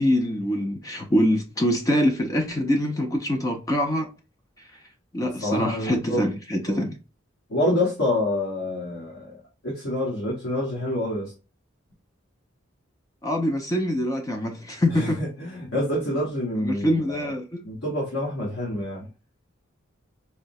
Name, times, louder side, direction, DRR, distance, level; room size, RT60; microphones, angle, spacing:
voice 1, 0.0-4.1 4.6-4.7 5.1-6.9 13.2-15.2 16.6-17.6, equal, 15° left, 0.4 m, -24 dB
voice 2, 5.2-6.3 6.7-6.9 7.5-11.3 14.9-17.3 17.6-19.1, left 1 dB, 85° left, 1.3 m, -27 dB
4.6 x 2.1 x 2.6 m
head